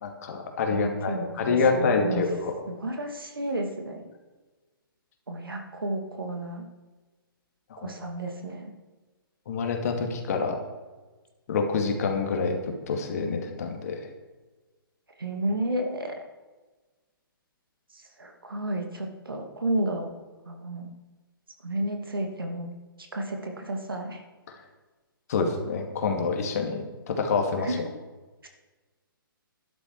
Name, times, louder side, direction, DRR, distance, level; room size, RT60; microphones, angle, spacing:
voice 1, 0.0-2.5 7.7-7.9 9.5-10.6 11.5-14.1 25.3-27.8, left 4 dB, 45° left, 3 dB, 2.4 m, -27 dB
voice 2, 0.7-2.2 2.7-4.1 5.3-6.6 7.8-8.7 15.2-16.1 17.9-20.1 20.5-20.9 21.6-22.7 23.0-24.2 27.6-27.8 28.4-28.5, right 1 dB, 70° right, 3 dB, 2.4 m, -32 dB
12.5 x 11.5 x 4.7 m, 1.2 s
figure-of-eight pair, 130°, 12 cm